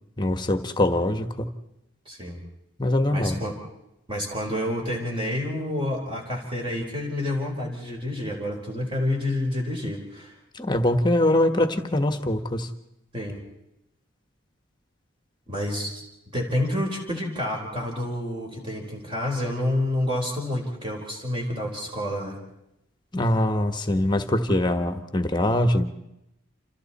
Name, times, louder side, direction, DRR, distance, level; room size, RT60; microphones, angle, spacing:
voice 1, 0.2-1.5 2.8-3.4 10.5-12.7 23.1-25.9, left 1 dB, 20° left, 8 dB, 1.5 m, -23 dB
voice 2, 2.1-2.4 3.1-3.6 4.1-10.3 13.1-13.4 15.5-16.0 16.3-22.4, left 1 dB, 25° right, 0 dB, 4.4 m, -29 dB
29.5 x 28.0 x 4.3 m, 0.88 s
head